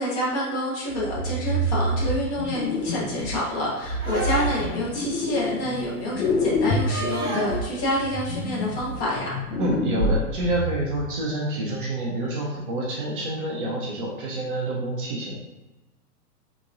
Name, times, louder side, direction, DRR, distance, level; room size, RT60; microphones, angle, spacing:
voice 1, 0.0-9.2, equal, 25° left, -5 dB, 0.8 m, -27 dB
sound 1, 0.9-3.4 3.8-5.9 6.1-11.0, left 1 dB, 55° left, 0.8 m, -27 dB
sound 2, 4.0-4.9 6.8-7.6 8.9-9.0, right 2 dB, 5° left, 0.3 m, -31 dB
voice 2, 9.6-15.4, right 1 dB, 35° right, -4 dB, 0.6 m, -28 dB
3.6 x 2.9 x 2.5 m, 1.1 s
figure-of-eight pair, 110°, 47 cm